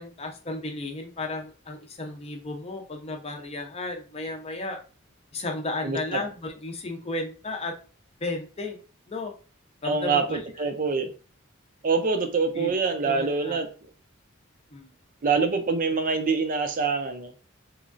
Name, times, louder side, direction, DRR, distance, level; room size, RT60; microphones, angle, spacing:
voice 1, 0.0-4.8 5.3-7.7 8.2-8.8 9.1-9.3 9.8-10.7 12.5-12.8 13.0-13.6 14.7-14.9, left 2 dB, 30° left, 0.6 m, -34 dB
voice 2, 5.8-6.2 9.8-11.1 11.8-13.7 15.2-17.3, right 4 dB, 40° right, 0.5 m, -25 dB
3.5 x 3.1 x 2.5 m
head